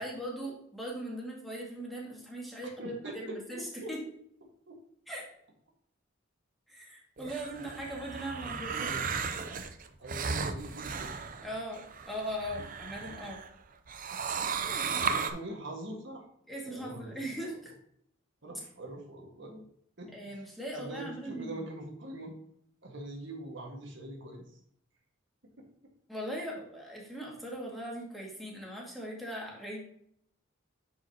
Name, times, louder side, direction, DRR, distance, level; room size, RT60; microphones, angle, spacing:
voice 1, 0.0-4.0 5.1-5.2 6.7-8.9 11.4-13.4 16.5-17.7 20.1-21.6 26.1-29.9, equal, ahead, -4 dB, 2.1 m, -39 dB
voice 2, 2.8-3.9 4.7-4.8 8.3-9.7 10.0-11.2 14.1-16.3 16.6-17.5 18.4-19.6 20.0-20.5 20.7-22.3 22.8-24.4 25.6-25.7, right 1 dB, 65° right, 0 dB, 1.6 m, -44 dB
sound 1, 7.2-13.5 13.9-15.3, right 5 dB, 45° right, 0.6 m, -35 dB
9.9 x 5.0 x 2.9 m, 0.70 s
head